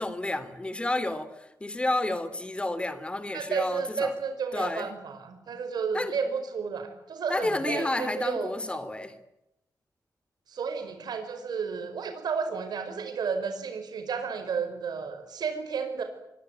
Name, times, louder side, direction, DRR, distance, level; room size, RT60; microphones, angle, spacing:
voice 1, 0.0-4.2 4.5-4.9 5.9-6.2 7.3-9.1, left 2 dB, 15° left, 14 dB, 2.7 m, -30 dB
voice 2, 3.3-8.5 10.5-16.0, right 5 dB, 90° right, 7 dB, 5.0 m, -32 dB
26.0 x 23.0 x 9.0 m, 0.86 s
wide cardioid pair, 140°, 7 cm